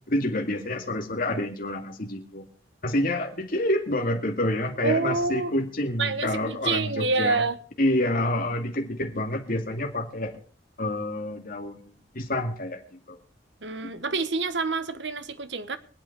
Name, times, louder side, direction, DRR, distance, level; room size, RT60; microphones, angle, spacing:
voice 1, 0.1-2.5 2.8-7.4 7.8-10.3 10.8-13.2 13.8-13.9, left 1 dB, 55° left, 2.2 m, -28 dB
voice 2, 4.8-5.5 6.0-7.6 13.6-15.8, right 4 dB, 85° right, 1.3 m, -27 dB
23.5 x 8.7 x 4.8 m
head